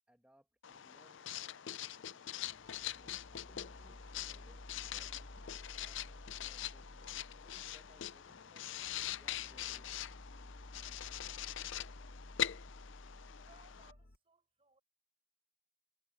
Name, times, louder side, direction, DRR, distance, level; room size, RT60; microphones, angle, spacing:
voice 1, 0.1-2.5 2.9-8.8 9.1-10.4, equal, 5° right, 1.5 m, -68 dB
Writing, 0.6-13.9, left 11 dB, 60° left, 0.5 m, -43 dB
sound 1, 2.4-14.2, left 1 dB, 45° left, 1.3 m, -54 dB
voice 2, 13.4-14.8, right 3 dB, 25° right, 6.8 m, -66 dB
head